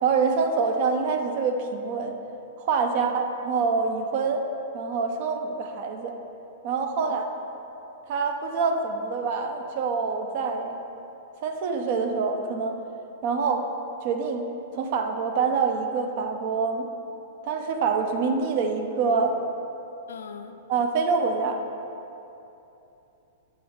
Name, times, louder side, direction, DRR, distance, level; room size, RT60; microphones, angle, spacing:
voice 1, 0.0-2.1 2.6-4.4 4.7-6.1 6.6-7.3 8.1-10.8 11.4-12.8 13.2-13.7 14.0-14.5 14.7-16.9 17.4-19.4 20.7-21.6, right 5 dB, 55° right, 5 dB, 0.6 m, -26 dB
voice 2, 20.1-20.6, left 7 dB, 80° left, 7 dB, 0.4 m, -41 dB
8.2 x 3.0 x 5.0 m, 2.9 s
hypercardioid pair, 120°, 0 cm